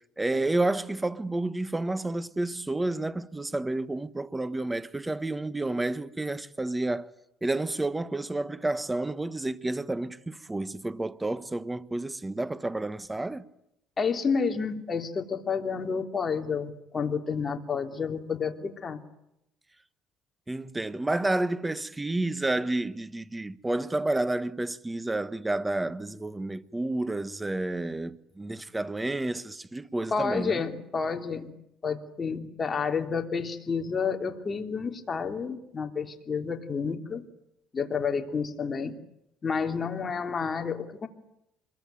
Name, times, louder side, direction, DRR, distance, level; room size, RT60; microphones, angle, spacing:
voice 1, 0.2-7.1 7.4-13.4 20.5-30.6, right 2 dB, 10° right, 1.3 m, -30 dB
voice 2, 14.0-19.0 30.1-31.5 31.8-37.3 37.7-39.0 39.4-41.1, left 5 dB, 30° left, 3.3 m, -30 dB
26.0 x 22.5 x 9.3 m
cardioid pair, 110°, 0 cm